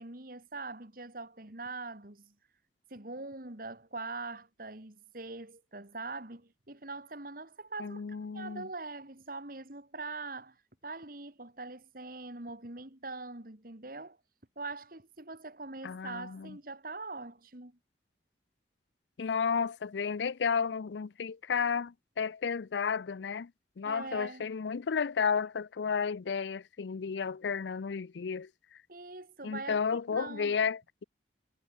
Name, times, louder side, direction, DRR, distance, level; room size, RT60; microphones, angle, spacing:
voice 1, 0.0-2.3 2.9-8.0 8.3-10.6 10.8-14.2 14.6-17.8 23.8-24.4 28.9-29.8 30.1-30.6, right 3 dB, 50° right, 2.5 m, -42 dB
voice 2, 7.8-8.7 15.8-16.6 19.2-23.5 23.8-28.5 29.4-31.0, left 6 dB, 80° left, 0.5 m, -32 dB
head